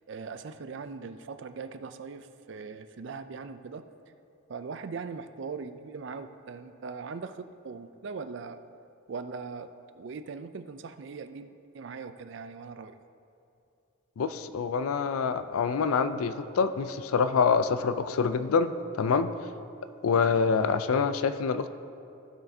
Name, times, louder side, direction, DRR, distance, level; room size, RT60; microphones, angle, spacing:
voice 1, 0.1-3.8 4.5-8.6 9.1-13.0, right 5 dB, 55° right, 10 dB, 0.4 m, -40 dB
voice 2, 14.2-19.3 20.0-21.7, left 5 dB, 90° left, 11 dB, 0.4 m, -26 dB
15.0 x 5.7 x 2.7 m, 2.6 s
head